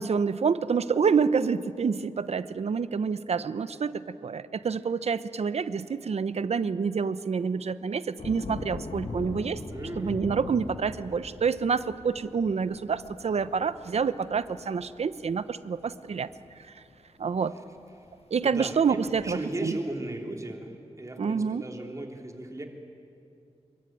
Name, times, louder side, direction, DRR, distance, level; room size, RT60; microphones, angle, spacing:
voice 1, 0.0-9.6 10.0-16.3 17.2-17.5 18.3-19.8 21.2-21.6, right 5 dB, 65° right, 14 dB, 0.9 m, -27 dB
sound 1, 8.2-16.9 18.1-18.2 18.4-19.4, left 3 dB, 55° left, 1.7 m, -41 dB
voice 2, 9.7-10.2 17.4-17.6 18.0-18.1 18.4-22.6, right 1 dB, 25° right, 2 dB, 3.3 m, -37 dB
27.0 x 23.0 x 9.3 m, 2.6 s
wide cardioid pair, 125°, 12 cm